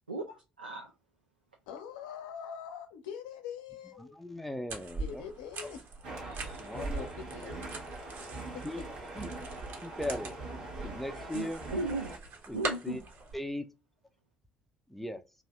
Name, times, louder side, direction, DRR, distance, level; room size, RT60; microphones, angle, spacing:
voice 1, 0.1-0.9 11.3-12.1 12.5-13.0, right 2 dB, 90° right, 0.4 m, -36 dB
voice 2, 1.7-4.2 5.0-5.9 6.7-7.7 8.4-8.9, left 7 dB, 70° left, 0.5 m, -44 dB
voice 3, 4.0-5.2 6.1-6.2 6.6-7.1 8.6-8.8 9.2-9.3 9.8-10.3 10.8-11.6 12.5-12.6 12.8-13.0 13.3-13.7 14.9-15.2, left 1 dB, 5° left, 0.5 m, -38 dB
sound 1, 4.7-13.3, right 3 dB, 50° right, 0.9 m, -42 dB
sound 2, 6.0-12.2, right 2 dB, 70° right, 0.9 m, -42 dB
2.7 x 2.4 x 3.1 m
figure-of-eight pair, 55°, 5 cm